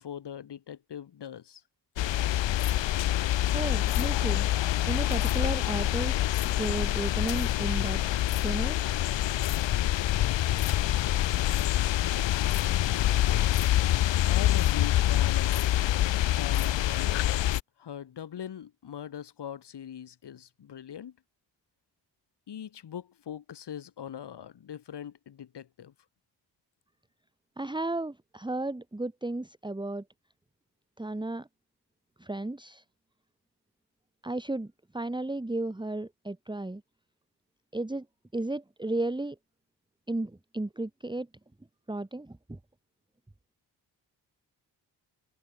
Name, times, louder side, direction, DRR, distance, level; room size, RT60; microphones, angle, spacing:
voice 1, 0.0-1.6 14.3-15.7 16.4-17.3 17.8-21.2 22.5-25.9, left 9 dB, 65° left, 2.1 m, -41 dB
sound 1, 2.0-17.6, left 13 dB, 85° left, 0.9 m, -26 dB
voice 2, 3.5-4.5 4.8-8.0 8.4-8.8 27.6-30.0 31.0-31.5 32.2-32.8 34.2-36.8 37.7-38.0 38.3-39.4 40.1-41.3 41.9-42.6, right 2 dB, 10° right, 1.6 m, -34 dB
cardioid pair, 60°, 43 cm